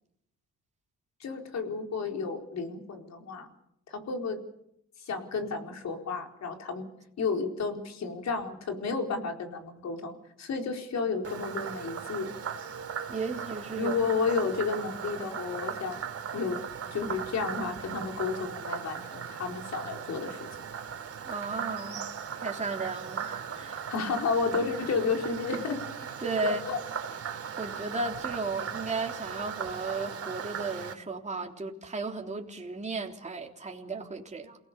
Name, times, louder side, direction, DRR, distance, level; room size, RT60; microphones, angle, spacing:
voice 1, 1.2-3.5 3.9-4.4 5.0-6.9 7.2-12.3 13.7-16.0 16.3-16.6 16.9-20.5 23.9-25.8 26.4-26.8, left 4 dB, 60° left, 4 dB, 4.6 m, -32 dB
Frog, 11.2-30.9, right 7 dB, 50° right, 3.2 m, -38 dB
voice 2, 13.1-13.9 21.2-22.0 22.4-23.9 26.2-26.6 27.6-34.6, right 3 dB, 25° right, 1 dB, 3.5 m, -34 dB
28.5 x 18.5 x 7.1 m, 0.77 s
cardioid pair, 90°, 30 cm